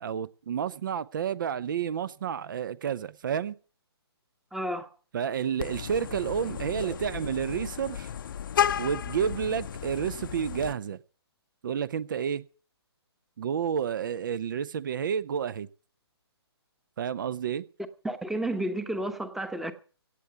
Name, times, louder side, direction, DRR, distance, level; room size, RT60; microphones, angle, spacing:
voice 1, 0.0-3.5 5.1-8.1 8.8-11.0 11.6-12.4 13.4-15.7 17.0-17.7, right 8 dB, 50° right, 0.7 m, -30 dB
voice 2, 4.5-4.9 6.8-6.9 18.0-19.7, right 1 dB, ahead, 1.0 m, -31 dB
Vehicle horn car horn honking, 5.6-10.7, left 9 dB, 50° left, 0.7 m, -33 dB
17.0 x 8.3 x 6.9 m
figure-of-eight pair, 140°, 14 cm